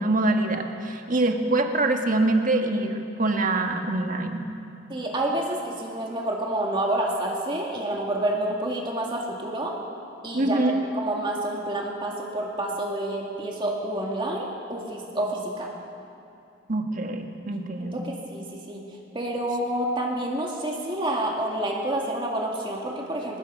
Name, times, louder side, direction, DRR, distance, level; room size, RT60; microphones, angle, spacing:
voice 1, 0.0-4.5 10.3-10.8 16.7-18.0, right 2 dB, 40° right, 4 dB, 1.5 m, -24 dB
voice 2, 4.9-9.8 10.2-10.6 10.9-15.7 17.8-18.8 19.1-23.4, right 1 dB, 25° right, -1 dB, 1.9 m, -28 dB
24.5 x 20.0 x 5.4 m, 2.6 s
head